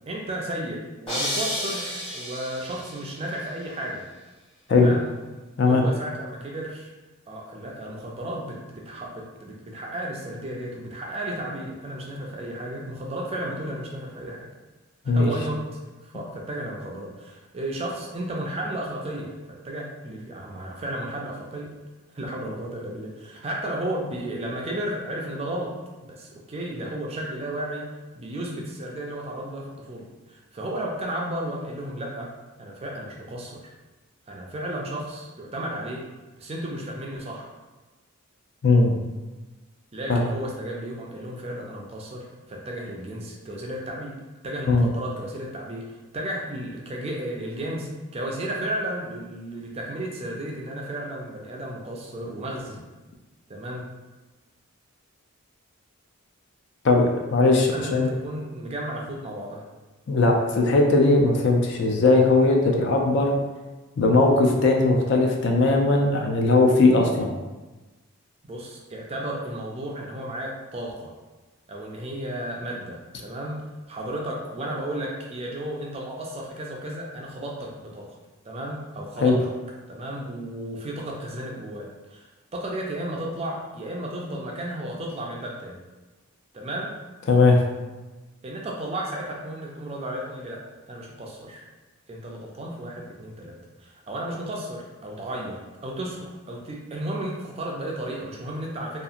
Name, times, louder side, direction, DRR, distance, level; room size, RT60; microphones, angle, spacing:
voice 1, 0.1-4.1 4.7-5.2 5.6-6.9 7.3-14.5 15.0-21.7 22.1-25.7 26.0-32.3 32.6-33.6 34.3-36.0 36.4-37.5 39.9-44.2 44.4-52.8 53.5-53.9 57.7-59.6 68.4-71.1 71.7-78.1 78.4-79.4 79.9-85.8 86.5-87.0 88.4-90.6 90.9-91.7 92.1-99.0, right 1 dB, 25° right, -1 dB, 0.3 m, -33 dB
sound 1, 1.1-3.2, equal, 25° left, 0.9 m, -31 dB
voice 2, 38.6-38.9 40.1-40.3 44.7-44.9 56.8-58.1 60.1-63.3 64.0-67.3 79.2-79.4 87.3-87.6, left 3 dB, 55° left, 1 dB, 0.4 m, -19 dB
2.8 x 2.4 x 2.4 m, 1.2 s
head